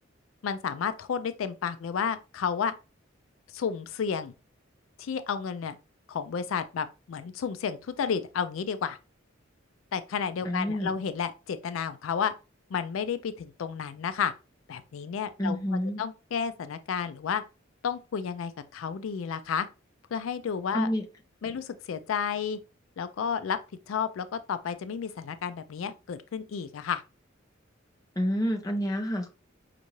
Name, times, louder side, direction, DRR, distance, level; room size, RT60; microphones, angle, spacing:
voice 1, 0.4-2.7 3.5-4.3 5.0-5.8 6.1-9.0 9.9-12.3 12.7-14.3 14.7-17.4 17.8-19.7 20.1-20.9 21.4-22.6 23.0-23.6 23.9-27.0, left 7 dB, 85° left, 0.4 m, -31 dB
voice 2, 10.4-11.0 15.4-16.1 20.7-21.0 28.2-29.3, equal, 20° left, 0.7 m, -28 dB
5.3 x 2.5 x 3.0 m
head